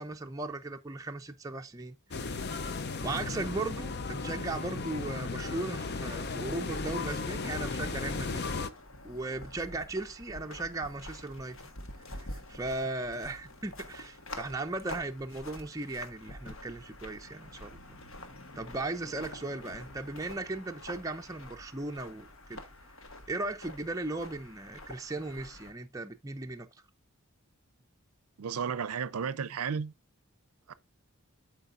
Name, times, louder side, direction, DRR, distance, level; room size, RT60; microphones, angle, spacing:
voice 1, 0.0-2.4 3.0-8.5 9.0-11.6 12.1-17.8 18.6-22.6 23.3-26.7, right 2 dB, 15° right, 0.5 m, -37 dB
sound 1, 2.1-8.7, left 3 dB, 50° left, 0.6 m, -35 dB
sound 2, 8.1-25.7, left 1 dB, 65° left, 1.2 m, -47 dB
voice 2, 28.4-29.9 30.7-30.8, right 6 dB, 80° right, 0.5 m, -33 dB
12.0 x 4.6 x 2.5 m
head